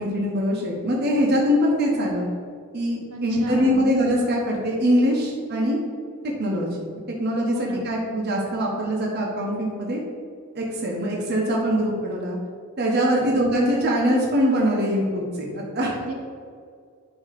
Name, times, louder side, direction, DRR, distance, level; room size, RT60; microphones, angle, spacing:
voice 1, 0.0-2.3 2.7-5.8 6.4-6.7 7.2-10.0 10.5-12.4 12.8-16.0, equal, 45° right, -2 dB, 1.1 m, -23 dB
voice 2, 3.1-3.8 7.5-7.8 13.1-13.2 16.0-16.1, right 2 dB, 90° right, -1 dB, 1.4 m, -34 dB
8.2 x 3.2 x 5.8 m, 2.1 s
head